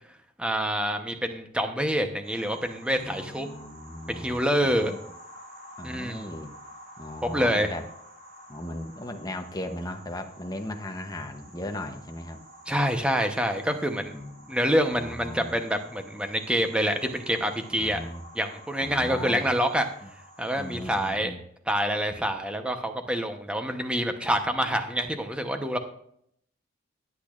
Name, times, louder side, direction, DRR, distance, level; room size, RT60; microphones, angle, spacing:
voice 1, 0.4-3.5 4.1-5.0 5.8-6.3 7.2-7.7 12.7-14.1 14.5-18.0 18.3-19.9 20.4-21.3 21.7-25.8, equal, 5° right, 6 dB, 0.9 m, -26 dB
sound 1, 2.2-21.1, equal, 75° right, 3.9 m, -50 dB
voice 2, 2.9-5.0 5.8-6.5 7.0-7.8 8.5-12.4 14.1-15.5 17.8-18.2 18.8-19.5 20.6-21.4, left 1 dB, 20° left, 5 dB, 0.8 m, -37 dB
19.0 x 8.3 x 2.5 m, 0.69 s
head